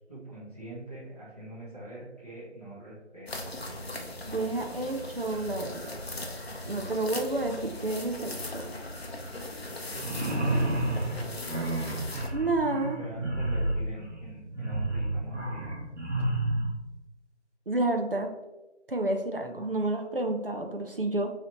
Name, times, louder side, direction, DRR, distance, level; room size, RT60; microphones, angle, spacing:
voice 1, 0.1-3.6 10.3-11.7 13.0-15.7, right 1 dB, 35° right, -9 dB, 1.2 m, -44 dB
sound 1, 3.3-12.3, left 1 dB, 60° left, 0.5 m, -39 dB
voice 2, 4.3-6.0 6.7-8.7 12.3-13.0 17.7-18.3 18.9-21.3, right 2 dB, 55° right, 4 dB, 0.4 m, -30 dB
sound 2, 9.9-16.7, right 1 dB, 75° right, 1.0 m, -30 dB
3.1 x 2.8 x 2.8 m, 1.1 s
figure-of-eight pair, 170°, 35 cm